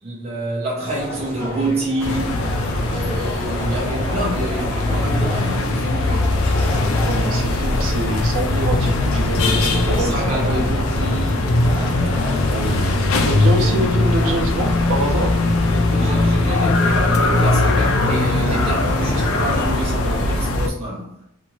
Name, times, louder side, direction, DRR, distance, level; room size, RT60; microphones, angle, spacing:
voice 1, 0.0-2.4 2.8-6.3 9.9-11.7 15.8-21.2, right 1 dB, 30° right, 0.7 m, -27 dB
sound 1, 0.8-20.3, equal, 40° left, 1.1 m, -32 dB
sound 2, 2.0-20.7, left 2 dB, 80° left, 0.5 m, -20 dB
voice 2, 6.5-10.9 12.5-12.8 13.2-15.3 18.4-18.7, right 2 dB, 70° right, 0.6 m, -26 dB
2.7 x 2.5 x 3.0 m
head